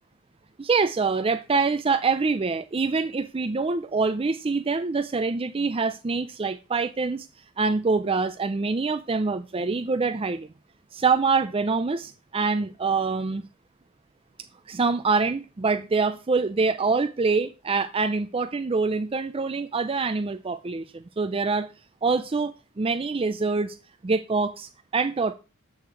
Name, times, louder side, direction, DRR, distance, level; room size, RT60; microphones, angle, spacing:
voice 1, 0.6-7.3 7.6-10.5 10.9-13.5 14.7-21.7 22.0-23.8 24.0-25.4, right 4 dB, 25° right, 0.5 m, -25 dB
8.5 x 6.5 x 4.6 m
head